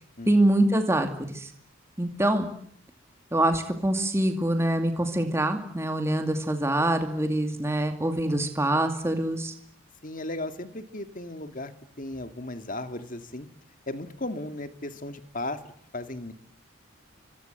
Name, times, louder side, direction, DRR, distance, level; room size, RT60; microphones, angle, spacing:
voice 1, 0.3-1.5 2.0-2.5 3.3-9.5, right 1 dB, 10° right, 5 dB, 2.4 m, -25 dB
voice 2, 10.0-11.7 12.0-13.5 13.9-16.3, left 2 dB, 40° left, 9 dB, 2.1 m, -36 dB
27.0 x 24.5 x 8.0 m, 0.66 s
head